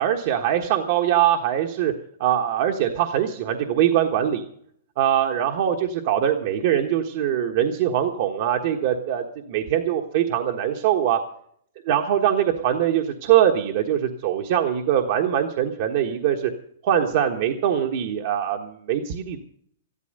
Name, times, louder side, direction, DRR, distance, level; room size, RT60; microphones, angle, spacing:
voice 1, 0.0-1.9 2.2-4.4 5.0-11.2 11.9-16.5 16.8-19.4, right 10 dB, 50° right, 3 dB, 1.3 m, -22 dB
13.5 x 12.5 x 6.6 m, 0.65 s
hypercardioid pair, 155°, 0 cm